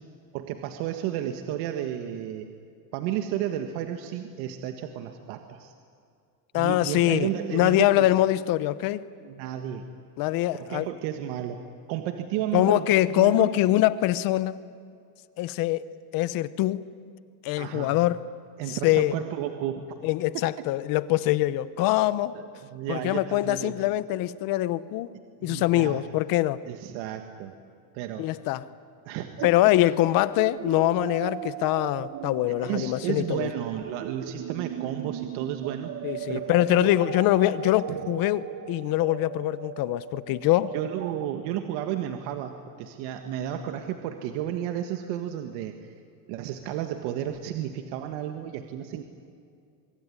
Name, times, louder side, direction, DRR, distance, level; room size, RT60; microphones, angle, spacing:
voice 1, 0.3-2.5 2.9-5.7 6.5-8.1 9.2-9.8 10.5-11.6 11.9-13.5 17.6-18.0 18.6-19.9 20.3-20.4 22.3-23.8 25.4-26.0 26.7-27.5 27.9-28.3 29.1-29.5 32.5-35.9 36.3-36.9 37.9-38.0 40.7-45.9 46.3-49.0, right 11 dB, 60° right, 6 dB, 1.8 m, -32 dB
voice 2, 6.5-9.0 10.2-10.8 12.5-14.6 15.4-15.8 16.1-16.8 17.4-18.2 18.7-19.1 20.0-22.4 22.9-25.1 25.4-26.6 28.2-28.6 29.4-33.5 36.0-38.4 38.7-40.7, left 15 dB, 45° left, 16 dB, 0.9 m, -23 dB
sound 1, 29.4-41.3, right 11 dB, 35° right, 0.9 m, -38 dB
25.0 x 23.0 x 9.9 m, 2.4 s
cardioid pair, 155°, 47 cm